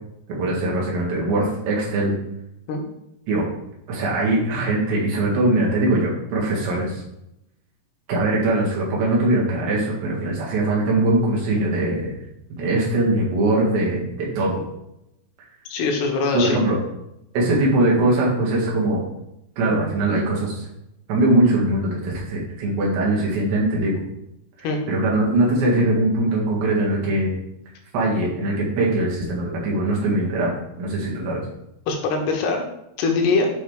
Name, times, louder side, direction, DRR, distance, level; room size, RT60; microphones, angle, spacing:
voice 1, 0.3-2.1 3.3-3.5 3.9-7.0 8.1-12.2 12.5-14.6 16.3-16.8 17.3-19.0 19.6-20.7 21.1-24.0 24.6-27.3 27.9-30.5 30.8-31.4, right 2 dB, 80° right, -3 dB, 4.2 m, -21 dB
voice 2, 15.7-16.6 24.6-24.8 31.9-32.6 33.0-33.5, left 3 dB, 80° left, 2 dB, 3.1 m, -22 dB
8.6 x 5.9 x 3.4 m, 0.85 s
omnidirectional pair, 5.0 m